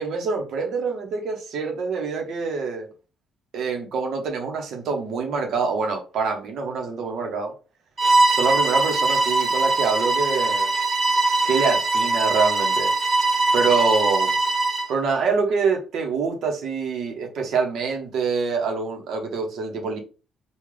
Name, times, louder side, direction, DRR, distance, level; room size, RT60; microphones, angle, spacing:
voice 1, 0.0-2.9 3.5-7.5 8.3-10.7 11.4-12.9 13.5-14.3 14.9-20.0, right 5 dB, 75° right, 0.9 m, -25 dB
Bowed string instrument, 8.0-14.9, right 2 dB, 30° right, 0.8 m, -21 dB
3.2 x 2.3 x 3.7 m
cardioid pair, 90°, 0 cm